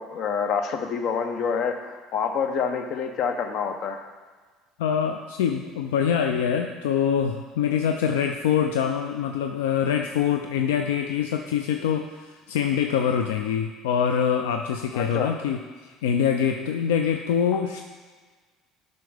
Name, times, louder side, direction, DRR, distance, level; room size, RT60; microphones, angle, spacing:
voice 1, 0.0-4.0 14.9-15.3 17.5-17.6, left 6 dB, 65° left, 7 dB, 0.7 m, -27 dB
voice 2, 4.8-17.8, left 8 dB, 85° left, 5 dB, 0.3 m, -24 dB
7.6 x 5.3 x 3.4 m, 1.4 s
supercardioid pair, 80°, 0 cm